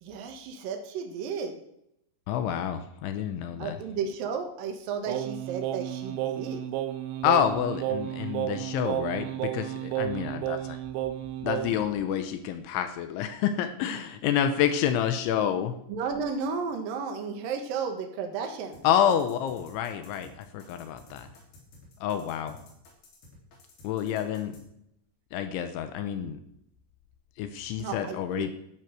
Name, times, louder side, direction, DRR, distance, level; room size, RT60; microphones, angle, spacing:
voice 1, 0.0-1.6 3.6-6.6 15.9-18.8 27.8-28.5, right 5 dB, 65° right, 4 dB, 2.3 m, -33 dB
voice 2, 2.3-3.8 7.2-10.8 11.4-15.7 18.8-21.3 22.0-22.6 23.8-24.6 25.3-26.4 27.4-28.5, left 9 dB, 80° left, 8 dB, 3.2 m, -28 dB
Singing, 5.1-11.9, right 12 dB, 85° right, 2.5 m, -32 dB
sound 1, 18.7-24.6, left 2 dB, 50° left, 5.1 m, -53 dB
11.5 x 10.5 x 6.5 m, 0.78 s
omnidirectional pair, 5.8 m